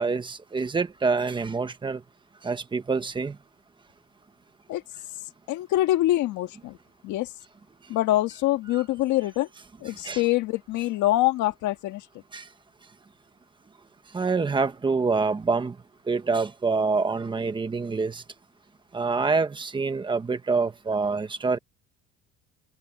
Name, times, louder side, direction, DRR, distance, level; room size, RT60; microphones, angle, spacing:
voice 1, 0.0-2.0 2.4-3.4 10.0-10.2 12.3-12.5 14.1-15.7 16.1-18.2 18.9-21.6, right 4 dB, 15° right, 1.1 m, -26 dB
voice 2, 5.5-6.8 7.0-7.3 7.9-9.5 9.8-12.1, left 15 dB, 70° left, 1.9 m, -24 dB
cardioid pair, 165°, 30 cm